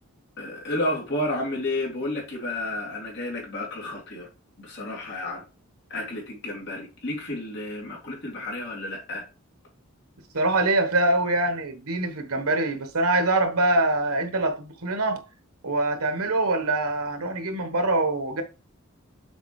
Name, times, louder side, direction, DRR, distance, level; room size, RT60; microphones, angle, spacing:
voice 1, 0.4-4.3 4.6-5.4 5.9-9.2, left 1 dB, 50° left, 2.6 m, -31 dB
voice 2, 10.3-15.2 15.6-18.4, right 2 dB, 85° right, 1.2 m, -24 dB
7.0 x 4.3 x 3.2 m
head